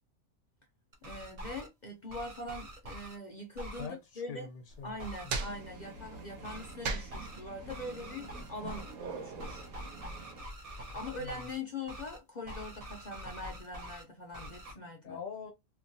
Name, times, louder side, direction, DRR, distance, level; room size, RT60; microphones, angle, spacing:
sound 1, 0.9-1.7 2.1-3.2 3.6-3.9 5.0-5.3 6.4-6.7 7.1-7.4 7.7-8.9 9.4-11.6 11.9-12.2 12.5-14.0 14.3-14.7, equal, 40° right, 0.5 m, -45 dB
voice 1, 1.0-4.5 4.8-9.7 10.9-15.2, left 2 dB, 50° left, 0.5 m, -42 dB
voice 2, 3.8-4.9 5.2-5.3 11.2-11.5 15.0-15.5, left 6 dB, 75° left, 1.1 m, -43 dB
sound 2, 4.7-9.7, right 4 dB, 65° right, 0.8 m, -41 dB
sound 3, 5.4-10.4, right 4 dB, 90° right, 1.4 m, -49 dB
2.9 x 2.3 x 2.6 m
omnidirectional pair, 1.5 m